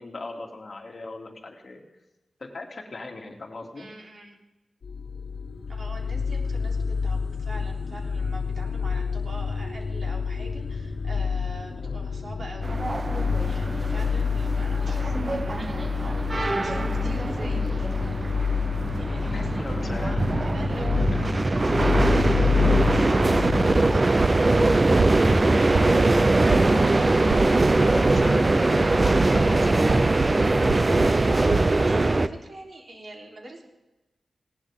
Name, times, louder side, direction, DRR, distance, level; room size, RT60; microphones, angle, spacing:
voice 1, 0.0-1.8 2.4-3.9 8.9-9.0 11.8-12.0 13.9-14.1 17.2-17.5 19.0-20.2 20.7-20.8 21.1-21.2 26.5-27.4 27.7-30.3, left 2 dB, 45° left, 1 dB, 2.7 m, -38 dB
voice 2, 3.7-4.4 5.7-12.8 13.4-16.2 16.6-17.9 18.9-21.0 21.4-25.3 31.2-33.6, right 2 dB, 55° right, -1 dB, 3.7 m, -44 dB
sound 1, 4.8-24.0, left 5 dB, 75° left, 1.6 m, -28 dB
sound 2, 12.6-32.3, right 2 dB, 30° right, 0.7 m, -22 dB
sound 3, 23.6-31.7, right 5 dB, 75° right, 0.9 m, -34 dB
20.0 x 18.0 x 3.7 m, 1.1 s
wide cardioid pair, 115°, 0 cm